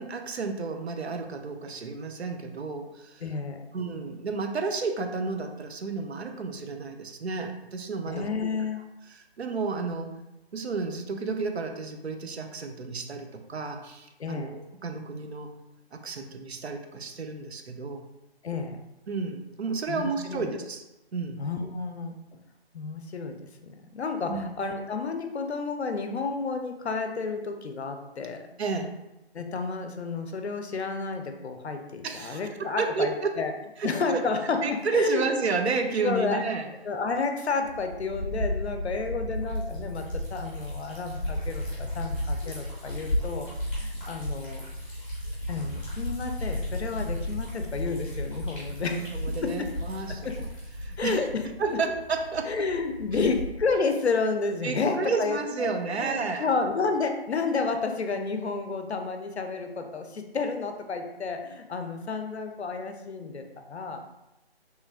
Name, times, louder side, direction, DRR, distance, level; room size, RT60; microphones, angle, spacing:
voice 1, 0.0-3.2 3.7-8.5 9.1-10.1 10.5-15.5 15.9-18.1 19.1-20.8 21.1-21.4 24.3-24.5 28.6-28.9 32.0-33.4 33.8-34.2 34.6-36.7 49.0-50.5 50.8-51.2 51.6-52.7 54.6-56.5, right 4 dB, 80° right, 5 dB, 0.5 m, -31 dB
voice 2, 3.2-3.6 8.1-8.8 14.2-14.6 18.4-18.9 19.9-20.5 21.4-22.2 22.7-23.4 23.6-28.5 29.3-33.1 33.4-33.5 33.8-35.3 36.0-43.5 43.8-44.6 45.5-49.0 49.4-49.7 50.1-50.2 51.0-51.3 51.7-51.8 52.5-64.0, left 4 dB, 90° left, 6 dB, 0.5 m, -31 dB
Liquid, 37.6-53.7, left 1 dB, 10° left, 0.5 m, -34 dB
3.1 x 2.4 x 2.2 m, 0.94 s
figure-of-eight pair, 150°, 32 cm